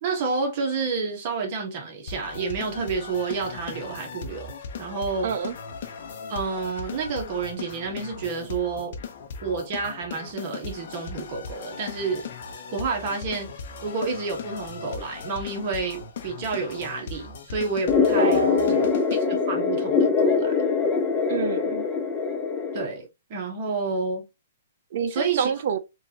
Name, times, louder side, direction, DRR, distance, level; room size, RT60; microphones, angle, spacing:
voice 1, 0.0-4.5 4.8-5.3 6.3-8.9 9.4-12.3 12.7-13.5 13.8-18.4 19.1-20.5 22.7-24.3 25.1-25.5, right 4 dB, 40° right, 1.4 m, -29 dB
sound 1, 2.1-19.2, left 5 dB, 55° left, 0.9 m, -38 dB
voice 2, 5.2-5.5 18.2-19.0 21.3-21.9 24.9-25.8, right 7 dB, 55° right, 0.6 m, -28 dB
sound 2, 17.9-22.9, left 5 dB, 15° left, 0.6 m, -23 dB
4.5 x 2.6 x 2.9 m
hypercardioid pair, 155°, 0 cm